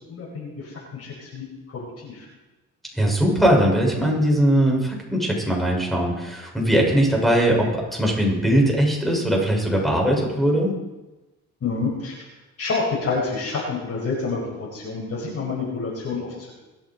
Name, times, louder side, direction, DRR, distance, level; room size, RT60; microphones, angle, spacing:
voice 1, 0.1-2.3 11.6-12.3 12.6-16.5, left 4 dB, 55° left, -4 dB, 5.8 m, -28 dB
voice 2, 2.9-10.7, right 1 dB, ahead, -1 dB, 6.4 m, -20 dB
25.0 x 8.9 x 4.6 m, 1.1 s
cardioid pair, 90°, 30 cm